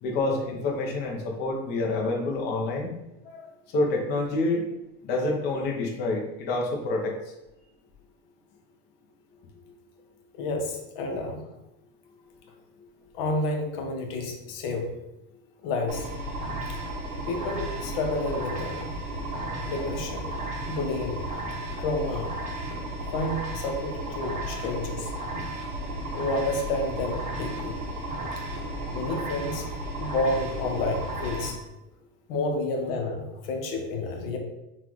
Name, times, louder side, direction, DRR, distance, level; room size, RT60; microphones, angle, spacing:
voice 1, 0.0-2.9 3.7-4.6 5.0-7.2, left 2 dB, 35° left, 0 dB, 0.7 m, -27 dB
voice 2, 10.3-11.4 13.1-14.9 15.6-16.1 16.7-16.8 17.3-18.9 19.6-20.3 20.7-21.2 21.8-22.3 23.1-25.1 26.1-27.8 28.8-29.7 30.0-31.6 32.3-34.4, left 2 dB, 70° left, 2 dB, 0.9 m, -30 dB
sound 1, 15.9-31.5, right 1 dB, 25° right, 0.7 m, -34 dB
5.7 x 2.4 x 3.1 m, 0.91 s
cardioid pair, 170°, 30 cm